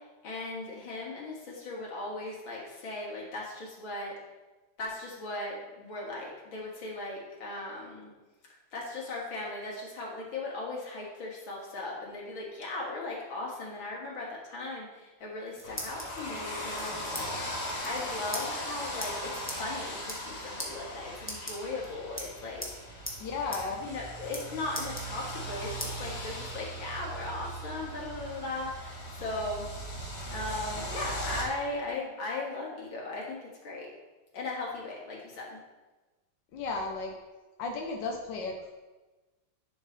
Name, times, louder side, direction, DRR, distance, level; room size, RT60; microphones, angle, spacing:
voice 1, 0.0-4.1 4.8-8.1 8.7-23.1 23.7-29.7 30.3-33.9 34.3-35.6, left 2 dB, 90° left, -3 dB, 2.8 m, -38 dB
sound 1, 15.2-16.2 16.8-17.3 17.5-17.6 17.8-18.0 18.3-18.5 19.0-19.1 19.5-19.6 20.0-20.3 20.6-20.7 21.2-21.9 22.2-22.8 23.1-23.2 23.5-23.6 23.9-24.4 24.7-25.5 25.8-25.9 26.4-27.3, left 1 dB, 10° left, 1.0 m, -39 dB
sound 2, 15.6-31.4, equal, 35° left, 1.8 m, -39 dB
voice 2, 23.2-23.8 36.5-37.1 37.6-38.7, left 3 dB, 70° left, 1 dB, 1.5 m, -34 dB
10.5 x 6.7 x 3.3 m, 1.2 s
omnidirectional pair, 2.1 m